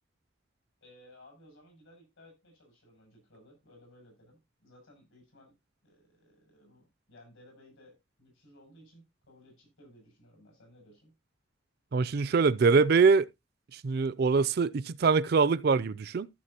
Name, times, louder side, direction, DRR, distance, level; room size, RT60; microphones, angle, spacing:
voice 1, 0.8-5.5 5.8-11.1, left 1 dB, 80° left, 7.0 m, -58 dB
voice 2, 11.9-13.3 13.7-16.3, right 4 dB, 50° right, 0.4 m, -24 dB
14.5 x 6.5 x 2.8 m
head